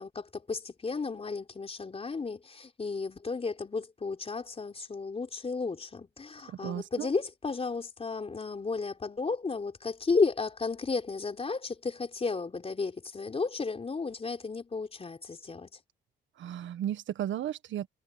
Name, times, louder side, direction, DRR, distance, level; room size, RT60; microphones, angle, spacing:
voice 1, 0.0-15.8, left 4 dB, 30° left, 4.0 m, -33 dB
voice 2, 6.6-7.1 16.4-17.9, right 11 dB, 75° right, 1.4 m, -34 dB
cardioid pair, 90°, 20 cm